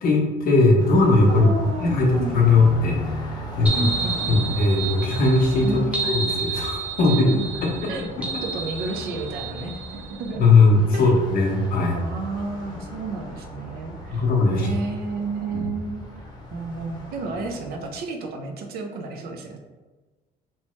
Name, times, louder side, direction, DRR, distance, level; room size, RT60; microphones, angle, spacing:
voice 1, 0.0-1.5 1.8-3.9 4.3-7.3 10.4-12.0 14.1-14.8 15.5-15.6, left 3 dB, 60° left, -1 dB, 0.7 m, -19 dB
Car passing by, 0.8-18.0, left 1 dB, 25° left, 0.8 m, -38 dB
voice 2, 1.3-2.5 3.7-4.5 5.6-6.1 7.1-7.5 7.8-8.0 8.4-10.6 10.9-11.2 11.9-14.3 14.5-16.0 16.5-19.6, right 3 dB, 65° right, 2 dB, 0.5 m, -31 dB
sound 1, 3.7-10.3, right 5 dB, 10° right, 0.5 m, -30 dB
3.0 x 2.0 x 3.0 m, 1.3 s
cardioid pair, 110°, 17 cm